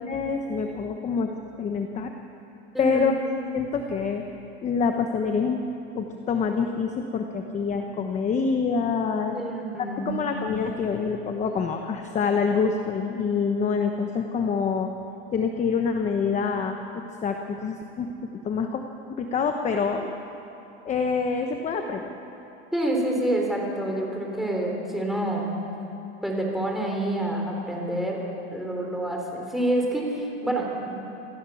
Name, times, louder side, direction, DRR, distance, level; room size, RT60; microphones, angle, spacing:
voice 1, 0.1-2.1 2.8-3.1 3.5-4.3 4.6-5.6 6.0-9.4 10.0-14.9 15.3-18.8 19.1-20.1 20.8-22.1, left 5 dB, 20° left, 5 dB, 1.0 m, -26 dB
voice 2, 2.7-3.1 9.3-10.2 22.7-25.5 26.2-28.2 28.5-30.9, right 1 dB, ahead, -1 dB, 3.8 m, -27 dB
27.0 x 14.5 x 7.1 m, 3.0 s
supercardioid pair, 150°, 32 cm